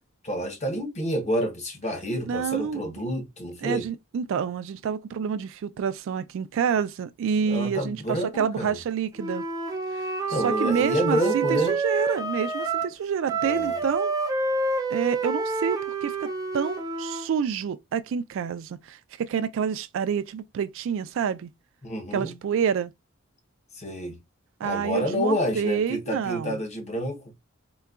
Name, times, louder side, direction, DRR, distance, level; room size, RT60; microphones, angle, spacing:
voice 1, 0.2-3.9 7.4-8.8 10.3-11.7 13.3-13.8 21.8-22.4 23.7-24.2 24.6-27.3, equal, 35° left, 0.8 m, -29 dB
voice 2, 2.3-2.8 3.6-9.4 9.9-10.0 10.4-14.1 14.9-16.3 16.5-21.5 22.1-22.9 24.6-26.5, right 7 dB, 65° right, 0.3 m, -28 dB
Wind instrument woodwind instrument, 9.2-12.9 13.3-17.3, right 3 dB, 15° right, 0.5 m, -28 dB
3.8 x 2.2 x 2.3 m
head